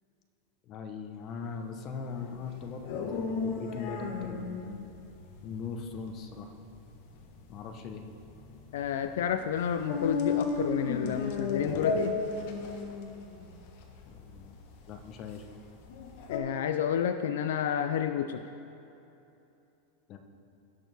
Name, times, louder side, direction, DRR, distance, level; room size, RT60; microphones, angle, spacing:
voice 1, 0.7-4.7 5.4-6.5 7.5-8.0 14.1-14.6 14.9-15.4 20.1-20.2, left 5 dB, 35° left, 5 dB, 0.9 m, -40 dB
sound 1, 2.1-16.4, left 4 dB, 60° left, 1.2 m, -35 dB
voice 2, 8.7-12.2 16.3-18.4, left 9 dB, 80° left, 9 dB, 0.4 m, -30 dB
17.5 x 6.3 x 3.5 m, 2.8 s
supercardioid pair, 145°, 0 cm